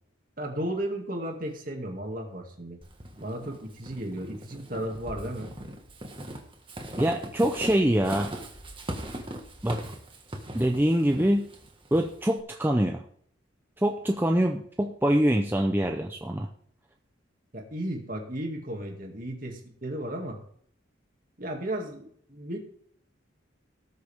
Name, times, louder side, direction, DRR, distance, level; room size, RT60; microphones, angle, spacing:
voice 1, 0.4-2.8 3.2-5.5 17.5-20.4 21.4-22.6, right 1 dB, 45° right, 2 dB, 2.2 m, -34 dB
Walk footsteps / Squeak, 2.8-12.4, right 1 dB, 25° right, 1.6 m, -40 dB
voice 2, 7.0-8.3 9.6-9.8 10.5-11.5 11.9-13.0 13.8-16.5, right 1 dB, 10° right, 2 dB, 0.6 m, -24 dB
18.5 x 6.7 x 3.5 m, 0.63 s
head